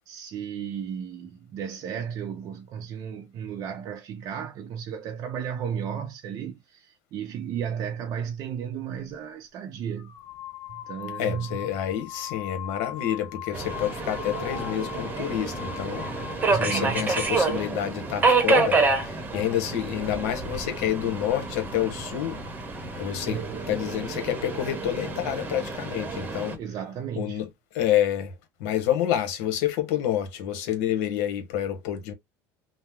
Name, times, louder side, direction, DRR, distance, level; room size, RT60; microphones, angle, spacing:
voice 1, 0.1-10.2 10.7-11.7 16.5-17.1 23.3-23.7 26.6-27.4, right 8 dB, 50° right, 0.5 m, -34 dB
sound 1, 9.0-9.2 10.0-17.7, left 13 dB, 45° left, 0.4 m, -40 dB
voice 2, 11.2-22.4 23.0-23.4 23.7-26.6 27.2-27.5 27.7-32.1, left 11 dB, 80° left, 1.0 m, -28 dB
Subway metro underground, 13.5-26.6, right 3 dB, 20° right, 0.9 m, -28 dB
2.8 x 2.1 x 3.4 m
supercardioid pair, 125°, 8 cm